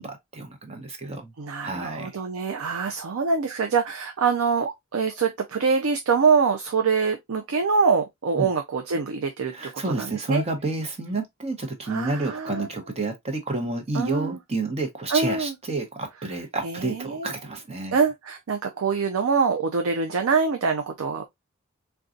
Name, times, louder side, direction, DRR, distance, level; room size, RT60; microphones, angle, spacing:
voice 1, 0.0-1.3 1.6-2.1 8.4-8.5 9.5-18.0, right 2 dB, 30° right, 0.8 m, -30 dB
voice 2, 1.4-10.4 11.8-12.7 13.9-14.4 15.1-15.6 16.6-17.3 17.9-21.2, right 5 dB, 80° right, 0.5 m, -24 dB
3.8 x 2.3 x 2.4 m
head